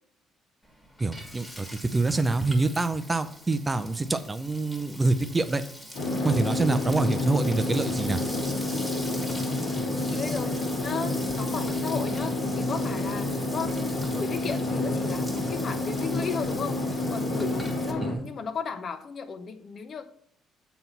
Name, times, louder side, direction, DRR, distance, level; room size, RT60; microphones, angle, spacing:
Frying (food), 0.6-17.9, equal, 5° left, 1.6 m, -42 dB
voice 1, 1.0-5.6 6.2-8.2 18.0-18.3, right 3 dB, 20° right, 0.5 m, -26 dB
sound 1, 5.9-18.1, left 2 dB, 75° left, 1.8 m, -29 dB
voice 2, 10.1-10.5 10.8-20.0, left 6 dB, 45° left, 0.8 m, -35 dB
7.5 x 4.1 x 5.8 m
cardioid pair, 110°, 0 cm